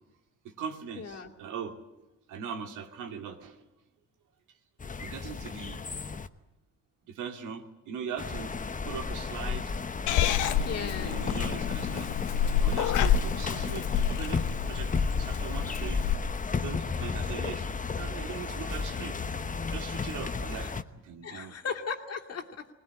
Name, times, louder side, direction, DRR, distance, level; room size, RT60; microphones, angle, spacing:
voice 1, 0.4-3.6 5.0-5.8 7.1-8.6 8.8-9.7 10.3-12.1 12.6-16.0 16.5-19.2 19.7-21.6, right 7 dB, 85° right, 4 dB, 2.5 m, -40 dB
voice 2, 0.9-1.3 10.6-11.2 12.9-13.2 20.5-20.7 21.2-22.7, left 6 dB, 55° left, 3 dB, 2.7 m, -37 dB
sound 1, 4.8-6.3 8.2-20.8, left 4 dB, 25° left, 1.0 m, -33 dB
Purr / Meow, 10.1-16.1, left 8 dB, 85° left, 1.1 m, -28 dB
21.0 x 19.0 x 9.9 m, 0.96 s
cardioid pair, 90°, 30 cm